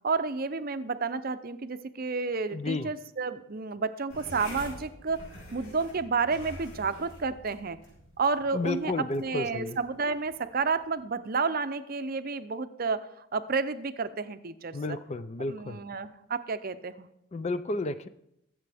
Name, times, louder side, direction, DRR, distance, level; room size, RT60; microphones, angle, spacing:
voice 1, 0.0-5.2 5.5-7.8 8.2-8.9 9.2-15.0 15.5-17.1, right 4 dB, 45° right, 11 dB, 0.6 m, -31 dB
voice 2, 2.5-2.9 8.5-9.8 14.7-15.8 17.3-18.1, left 2 dB, 30° left, 12 dB, 0.4 m, -32 dB
sound 1, 4.1-11.0, equal, 85° left, 5.4 m, -47 dB
22.0 x 7.7 x 3.5 m, 0.81 s
head